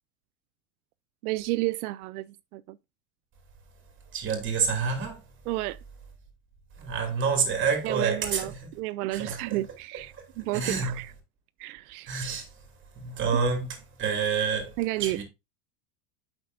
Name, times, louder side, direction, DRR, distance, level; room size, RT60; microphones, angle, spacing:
voice 1, 1.2-2.8 5.5-5.8 7.8-8.5 8.8-11.1 11.6-12.1 14.8-15.2, right 18 dB, 85° right, 0.5 m, -31 dB
voice 2, 4.1-5.2 6.8-8.7 9.1-9.6 10.1-11.0 12.1-12.5 12.9-15.2, right 5 dB, 25° right, 2.8 m, -28 dB
8.6 x 6.2 x 2.6 m
supercardioid pair, 145°, 43 cm